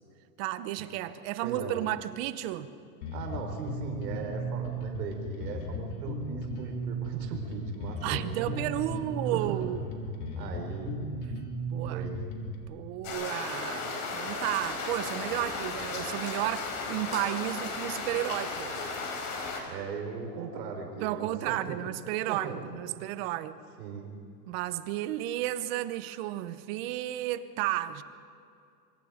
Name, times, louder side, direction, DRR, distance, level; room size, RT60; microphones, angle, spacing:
voice 1, 0.4-2.7 8.0-9.8 11.7-12.0 12.7-18.7 21.0-23.6 24.5-28.0, right 14 dB, 35° right, 1.0 m, -33 dB
voice 2, 1.4-1.8 3.1-8.6 9.0-9.5 10.4-10.9 11.9-12.2 19.6-21.8 22.3-23.0 23.8-24.1, right 5 dB, 75° right, 4.9 m, -39 dB
Bass guitar, 3.0-12.6, right 1 dB, 60° left, 3.8 m, -35 dB
sound 1, 13.0-19.6, left 3 dB, 40° left, 5.0 m, -35 dB
27.0 x 24.5 x 5.1 m
supercardioid pair, 155°, 49 cm